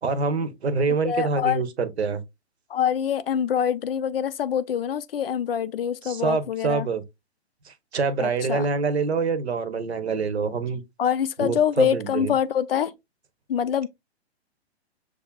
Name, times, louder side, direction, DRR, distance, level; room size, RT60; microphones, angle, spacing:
voice 1, 0.0-2.2 6.0-7.0 7.6-10.8 11.4-12.3, right 4 dB, 70° right, 0.8 m, -26 dB
voice 2, 1.0-1.6 2.7-6.9 8.2-8.7 11.0-12.9 13.5-13.9, left 9 dB, 60° left, 0.4 m, -25 dB
6.5 x 2.4 x 2.2 m
figure-of-eight pair, 120°, 33 cm